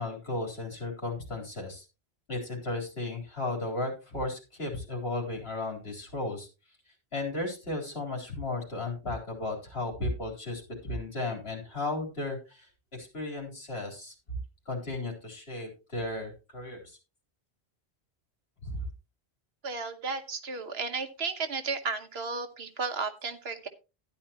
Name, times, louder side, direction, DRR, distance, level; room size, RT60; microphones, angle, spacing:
voice 1, 0.0-1.9 2.3-6.5 7.1-14.1 14.7-17.0 18.6-18.9, left 2 dB, 70° left, 0 dB, 4.2 m, -35 dB
voice 2, 19.6-23.7, right 4 dB, 70° right, 8 dB, 1.4 m, -34 dB
12.5 x 10.5 x 2.9 m, 0.29 s
omnidirectional pair, 1.1 m